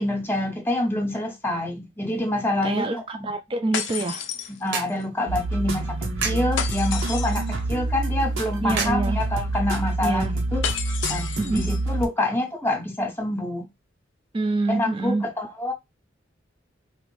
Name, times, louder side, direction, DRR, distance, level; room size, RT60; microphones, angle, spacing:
voice 1, 0.0-3.3 4.5-10.6 11.1-13.7 14.7-15.7, left 1 dB, 10° left, 0.6 m, -27 dB
voice 2, 2.6-4.3 8.6-9.2 10.0-10.3 11.4-11.7 14.3-15.2, right 2 dB, 25° right, 0.4 m, -26 dB
sound 1, 3.7-5.0 6.6-7.6 10.6-11.8, left 8 dB, 65° left, 0.5 m, -31 dB
sound 2, 3.8-9.8, right 5 dB, 65° right, 0.8 m, -37 dB
sound 3, 5.3-12.1, right 2 dB, 90° right, 0.8 m, -27 dB
3.0 x 2.6 x 3.1 m
head